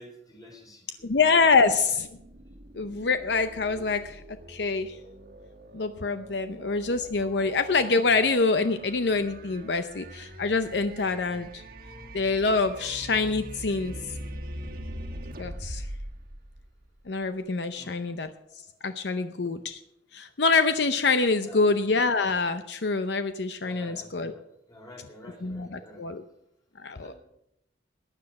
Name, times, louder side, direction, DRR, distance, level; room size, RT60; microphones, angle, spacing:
voice 1, 0.0-1.2 1.5-1.7 6.7-6.8 7.2-7.4 11.8-12.2 12.8-13.0 17.7-18.0 18.4-18.5 21.4-21.7 23.6-26.1 26.9-27.1, left 1 dB, 20° left, 1 dB, 4.0 m, -50 dB
voice 2, 1.0-2.1 2.7-4.2 4.5-5.0 5.7-11.6 12.1-13.9 15.4-15.9 17.1-18.3 18.8-19.8 20.1-24.3 25.4-26.2 26.8-27.1, left 4 dB, 70° left, 10 dB, 0.7 m, -25 dB
sound 1, 1.0-17.2, right 1 dB, 55° right, 1.4 m, -43 dB
15.0 x 9.9 x 5.9 m, 0.80 s
head